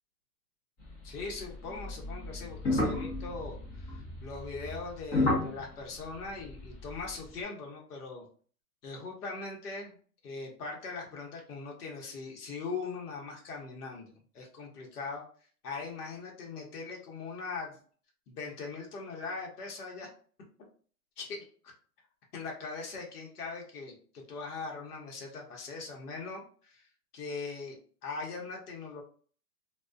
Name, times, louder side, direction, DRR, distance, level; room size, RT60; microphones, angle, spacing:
sound 1, 0.8-7.4, left 2 dB, 20° left, 0.7 m, -34 dB
voice 1, 1.0-8.3 8.8-9.9 10.2-15.2 15.6-17.8 18.3-20.1 21.2-21.3 22.3-26.9 27.1-27.8 28.0-29.0, left 4 dB, 80° left, -1 dB, 0.9 m, -40 dB
2.2 x 2.2 x 2.4 m, 0.43 s
hypercardioid pair, 145°, 45 cm